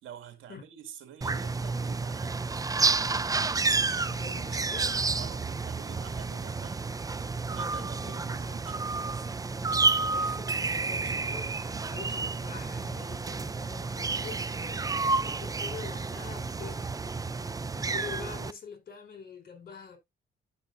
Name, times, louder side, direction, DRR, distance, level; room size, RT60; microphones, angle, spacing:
voice 1, 0.0-2.5 5.1-6.8 7.5-9.3, right 9 dB, 85° right, 2.1 m, -48 dB
sound 1, 1.2-18.5, right 3 dB, 20° right, 0.5 m, -30 dB
voice 2, 3.9-5.0 7.8-8.4 9.4-14.9 15.3-16.9 17.7-20.0, left 6 dB, 50° left, 4.3 m, -45 dB
12.5 x 5.7 x 2.6 m
cardioid pair, 90°, 20 cm